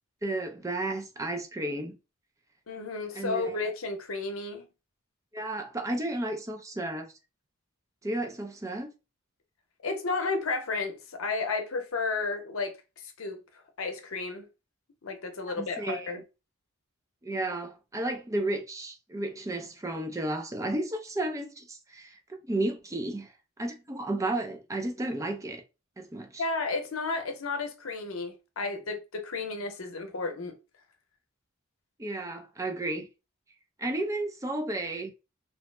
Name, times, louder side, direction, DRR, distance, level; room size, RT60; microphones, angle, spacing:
voice 1, 0.2-2.0 3.1-3.6 5.3-7.1 8.0-8.9 15.6-16.2 17.2-25.6 26.0-26.4 32.0-33.1 33.8-35.1, right 2 dB, 15° right, 0.4 m, -33 dB
voice 2, 2.7-4.6 9.8-12.7 13.0-13.4 13.8-14.5 15.0-16.2 26.4-30.6, left 3 dB, 80° left, 0.7 m, -32 dB
2.9 x 2.0 x 3.2 m
head